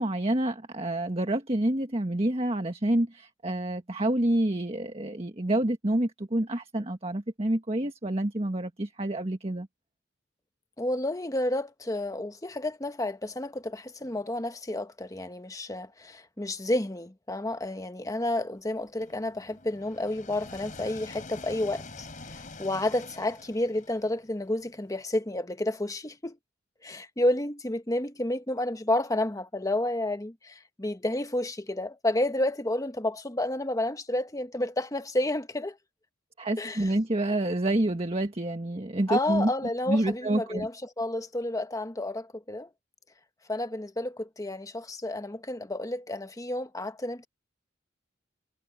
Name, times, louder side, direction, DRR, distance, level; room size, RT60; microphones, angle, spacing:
voice 1, 0.0-9.7 36.4-39.5 39.9-40.7, right 1 dB, 30° right, 1.5 m, -28 dB
voice 2, 10.8-26.4 26.8-35.8 36.6-36.9 39.1-42.7 43.5-47.3, left 1 dB, 20° left, 1.1 m, -30 dB
sound 1, 19.0-24.9, left 3 dB, 45° left, 4.0 m, -46 dB
head